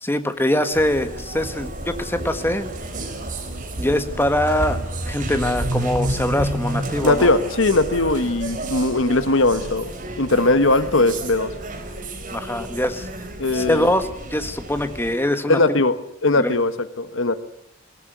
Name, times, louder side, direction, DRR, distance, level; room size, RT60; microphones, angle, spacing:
voice 1, 0.0-2.7 3.8-4.8 5.1-7.3 12.3-13.1 13.5-15.6 16.4-16.5, left 1 dB, 10° left, 9 dB, 1.5 m, -23 dB
sound 1, 0.7-15.1, right 1 dB, 40° right, 3.8 m, -30 dB
voice 2, 7.0-9.9 10.2-11.5 13.4-13.9 15.5-16.0 16.2-16.7 17.0-17.3, left 2 dB, 65° left, 12 dB, 1.3 m, -19 dB
22.0 x 17.0 x 9.2 m, 0.74 s
head